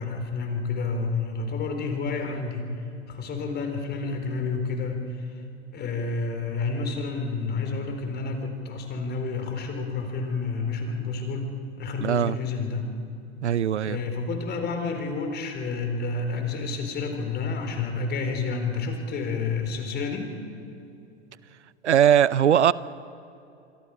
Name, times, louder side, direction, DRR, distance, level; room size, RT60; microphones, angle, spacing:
voice 1, 0.0-2.7 3.1-5.4 5.7-12.9 13.8-20.3, left 4 dB, 30° left, 5 dB, 3.9 m, -30 dB
voice 2, 12.0-12.4 13.4-14.0 21.8-22.7, right 9 dB, 85° right, 19 dB, 0.6 m, -20 dB
26.5 x 23.5 x 4.8 m, 2.8 s
figure-of-eight pair, 95°, 34 cm